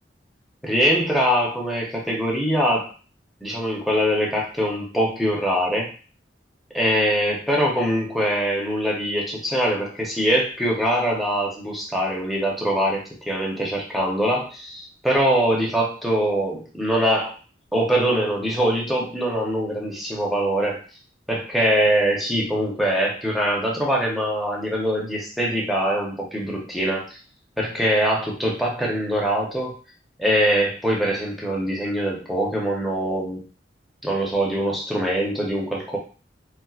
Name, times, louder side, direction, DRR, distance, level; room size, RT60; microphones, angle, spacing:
voice 1, 0.6-2.9 3.4-5.9 6.7-17.4 17.7-20.8 21.3-27.2 27.6-29.8 30.2-33.4 34.0-36.0, equal, ahead, -3 dB, 0.8 m, -23 dB
4.3 x 2.1 x 2.4 m, 0.37 s
head